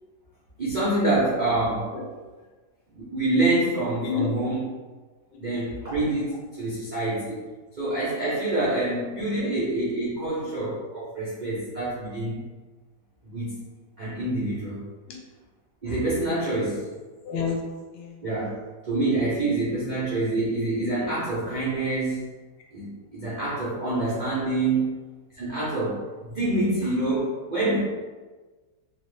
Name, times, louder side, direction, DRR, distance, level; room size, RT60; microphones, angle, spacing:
voice 1, 0.6-1.9 2.9-4.6 5.4-7.5 7.8-12.4 13.2-13.6 14.0-14.8 15.8-16.9 18.2-18.6 18.9-22.2 22.7-24.9 25.3-26.0 26.3-27.8, right 2 dB, 80° right, -10 dB, 0.4 m, -26 dB
voice 2, 4.0-4.3 5.3-5.4 9.4-9.5 10.4-10.5 15.1-15.2 17.2-17.6 17.9-18.2 27.7-27.8, left 6 dB, 80° left, -1 dB, 1.2 m, -30 dB
3.0 x 2.1 x 3.1 m, 1.3 s
omnidirectional pair, 1.9 m